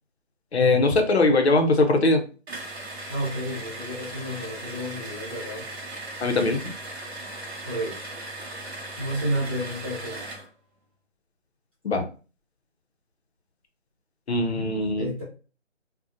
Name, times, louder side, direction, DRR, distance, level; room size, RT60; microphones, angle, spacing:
voice 1, 0.5-2.2 6.2-6.6 11.8-12.0 14.3-15.1, left 2 dB, 60° left, 5 dB, 0.6 m, -21 dB
sound 1, 2.5-10.5, right 2 dB, 55° right, 0.8 m, -38 dB
voice 2, 3.1-5.6 7.6-8.0 9.0-10.4 14.9-15.2, equal, 20° right, -11 dB, 1.0 m, -31 dB
2.7 x 2.1 x 2.4 m, 0.35 s
figure-of-eight pair, 175°, 38 cm